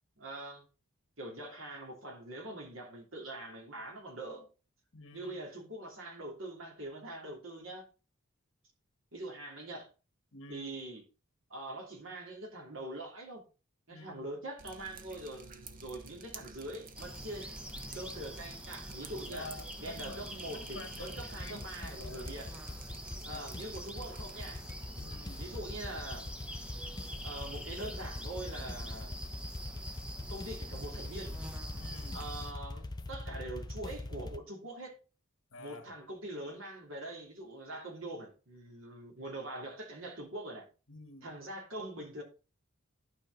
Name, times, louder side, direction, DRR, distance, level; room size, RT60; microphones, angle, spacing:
voice 1, 0.2-0.6 1.2-4.5 5.1-7.8 9.1-9.9 10.5-11.0 11.5-13.4 13.9-17.5 17.9-19.5 19.8-22.6 23.2-24.6 25.4-26.3 27.2-29.1 30.3-31.3 32.1-34.9 35.6-40.6 41.2-42.2, right 1 dB, 70° right, 3.1 m, -43 dB
voice 2, 4.9-5.4 10.3-10.7 13.9-14.4 19.3-22.4 23.2-23.6 25.0-25.4 31.7-32.2 35.5-35.9 40.9-41.3, left 2 dB, 65° left, 1.7 m, -49 dB
Drip, 14.6-24.8, right 4 dB, 40° right, 1.0 m, -52 dB
sound 1, 17.0-32.5, equal, 5° right, 0.9 m, -45 dB
sound 2, 21.0-34.4, left 2 dB, 20° left, 0.5 m, -43 dB
12.0 x 5.1 x 4.1 m
head